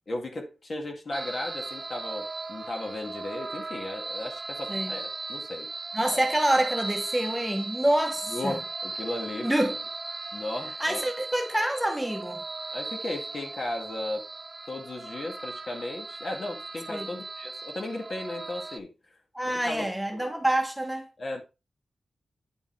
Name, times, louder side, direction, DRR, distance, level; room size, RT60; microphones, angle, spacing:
voice 1, 0.1-5.7 8.3-9.5 10.3-11.0 12.7-14.3 14.7-18.9 19.4-19.9 20.1-20.3 21.2-21.4, left 2 dB, 50° left, 2.0 m, -35 dB
sound 1, 1.1-18.8, right 3 dB, 30° right, 0.6 m, -37 dB
voice 2, 5.9-8.6 9.4-9.8 10.8-12.4 16.9-17.1 19.3-21.1, right 1 dB, 5° right, 1.2 m, -27 dB
9.5 x 5.3 x 3.5 m
wide cardioid pair, 115°, 0 cm